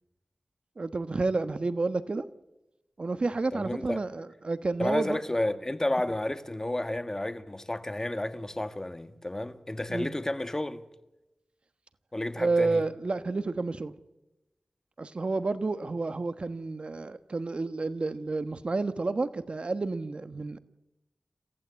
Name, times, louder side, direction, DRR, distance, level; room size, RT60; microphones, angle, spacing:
voice 1, 0.8-2.3 3.0-5.2 9.9-10.1 12.4-13.9 15.0-20.6, right 3 dB, 55° right, 1.3 m, -30 dB
voice 2, 3.5-4.0 4.8-10.8 12.1-12.9, left 1 dB, 25° left, 1.7 m, -31 dB
28.0 x 15.0 x 8.2 m
wide cardioid pair, 60°, 2 cm